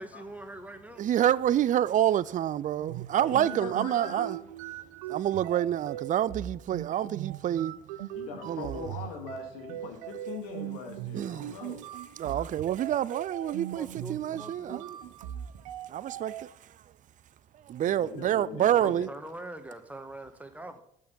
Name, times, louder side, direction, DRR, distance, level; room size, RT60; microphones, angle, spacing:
voice 1, 0.0-1.0 13.7-14.9 17.9-20.8, right 1 dB, 5° right, 1.4 m, -44 dB
voice 2, 1.0-4.4 5.1-7.8 8.4-9.0 11.1-11.6 12.2-15.0 15.9-16.5 17.6-19.1, right 11 dB, 40° right, 0.4 m, -28 dB
sound 1, 2.7-16.4, right 12 dB, 85° right, 0.6 m, -40 dB
voice 3, 3.3-4.3 8.2-11.8 12.3-12.4 17.8-19.1, left 6 dB, 90° left, 1.8 m, -41 dB
8.4 x 5.9 x 6.7 m
hypercardioid pair, 65°, 19 cm